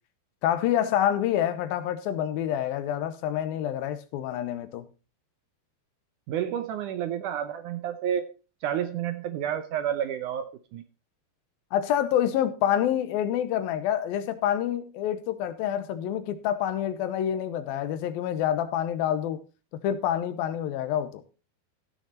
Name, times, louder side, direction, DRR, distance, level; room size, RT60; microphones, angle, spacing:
voice 1, 0.4-4.9 11.7-19.4 19.8-21.2, left 10 dB, 80° left, 2.7 m, -27 dB
voice 2, 6.3-8.2 8.6-10.5 10.7-10.8, right 10 dB, 75° right, 2.0 m, -30 dB
15.5 x 6.4 x 4.1 m
omnidirectional pair, 4.2 m